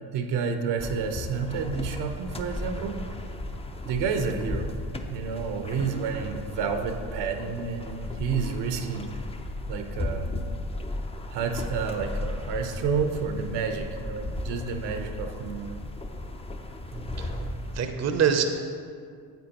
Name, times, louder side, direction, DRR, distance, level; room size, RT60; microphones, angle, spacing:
voice 1, 0.1-3.1 3.8-4.7 5.1-9.2 9.7-10.3 11.3-15.8, right 5 dB, 65° right, 5 dB, 0.9 m, -30 dB
sound 1, 0.8-17.9, left 1 dB, 15° left, 0.6 m, -35 dB
voice 2, 16.9-18.4, right 7 dB, 35° right, 6 dB, 0.8 m, -26 dB
9.1 x 7.9 x 3.0 m, 2.2 s
supercardioid pair, 75°, 44 cm